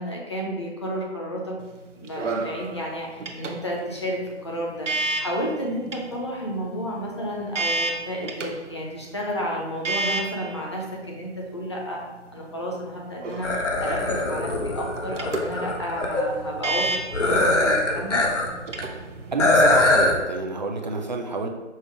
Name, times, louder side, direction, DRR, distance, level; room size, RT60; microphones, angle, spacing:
voice 1, 0.0-1.6 2.0-12.0 12.3-18.2, equal, 25° left, -2 dB, 0.5 m, -31 dB
sound 1, 1.6-20.2, right 2 dB, 80° right, 0.7 m, -33 dB
sound 2, 13.4-16.2 17.1-18.5 18.8-18.9 19.4-20.2, left 2 dB, 80° left, 1.0 m, -22 dB
voice 2, 19.3-21.5, right 3 dB, 40° right, 3 dB, 0.5 m, -28 dB
5.4 x 2.0 x 4.6 m, 1.1 s
figure-of-eight pair, 150°, 36 cm